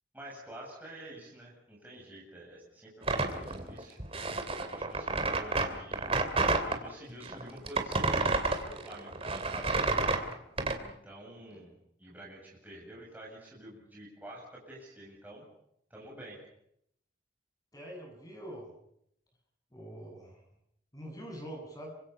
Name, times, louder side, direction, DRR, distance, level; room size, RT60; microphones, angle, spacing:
voice 1, 0.1-4.0 4.6-6.1 6.7-9.8 10.8-15.4 15.9-16.4, right 1 dB, 10° right, -4 dB, 7.8 m, -48 dB
sound 1, 3.0-6.8 7.2-10.8, right 3 dB, 30° right, 2.8 m, -30 dB
voice 2, 17.7-18.7 19.7-20.4 20.9-21.9, right 1 dB, 20° left, 1 dB, 7.4 m, -44 dB
27.5 x 25.0 x 5.7 m, 0.74 s
head